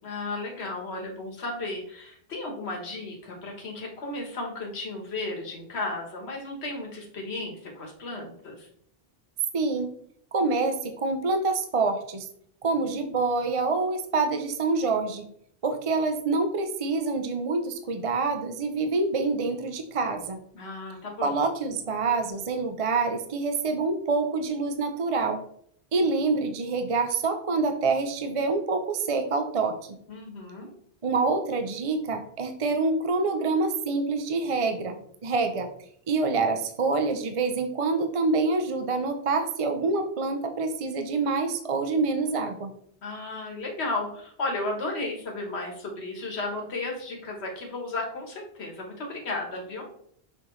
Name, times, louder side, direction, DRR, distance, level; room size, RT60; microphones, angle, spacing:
voice 1, 0.0-8.7 20.5-21.4 30.1-30.7 43.0-49.9, left 2 dB, 80° left, 1 dB, 1.6 m, -34 dB
voice 2, 9.5-9.9 10.3-12.3 12.6-15.3 15.6-20.4 21.2-25.4 25.9-30.0 31.0-35.7 36.1-42.7, right 3 dB, 40° right, 6 dB, 0.6 m, -26 dB
6.6 x 5.4 x 3.1 m, 0.65 s
omnidirectional pair, 1.1 m